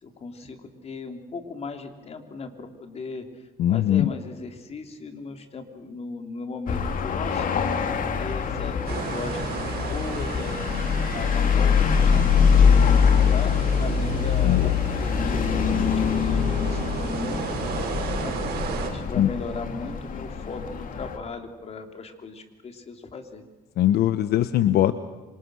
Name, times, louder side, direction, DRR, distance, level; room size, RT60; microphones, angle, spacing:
voice 1, 0.0-7.5 7.8-10.6 11.1-18.4 18.8-23.4, left 4 dB, 40° left, 5 dB, 3.3 m, -37 dB
voice 2, 3.6-4.1 14.4-14.7 19.2-19.3 23.8-24.9, left 12 dB, 70° left, 12 dB, 1.0 m, -21 dB
sound 1, 6.7-21.2, left 6 dB, 55° left, 2.7 m, -23 dB
sound 2, 8.9-18.9, right 6 dB, 65° right, 5.6 m, -34 dB
27.0 x 26.0 x 6.4 m, 1.1 s
cardioid pair, 110°, 17 cm